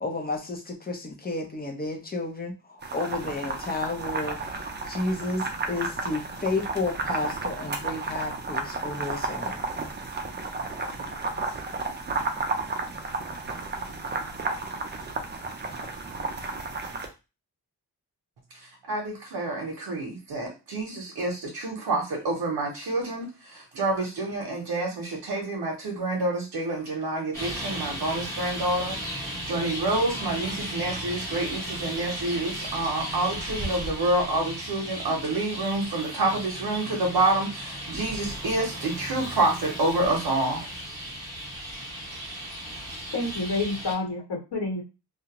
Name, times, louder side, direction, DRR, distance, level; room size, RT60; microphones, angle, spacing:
voice 1, 0.0-4.4 4.9-9.6, left 3 dB, 25° left, 2 dB, 0.6 m, -31 dB
sound 1, 2.8-17.1, right 3 dB, 30° right, 0.4 m, -32 dB
voice 2, 18.6-40.7, right 2 dB, 75° right, -1 dB, 0.8 m, -28 dB
Traffic noise roadway noise, 27.3-43.9, equal, 10° left, 1.0 m, -35 dB
voice 3, 43.1-44.8, left 2 dB, 80° left, -2 dB, 1.2 m, -29 dB
2.4 x 2.0 x 2.8 m, 0.28 s
wide cardioid pair, 110°, 39 cm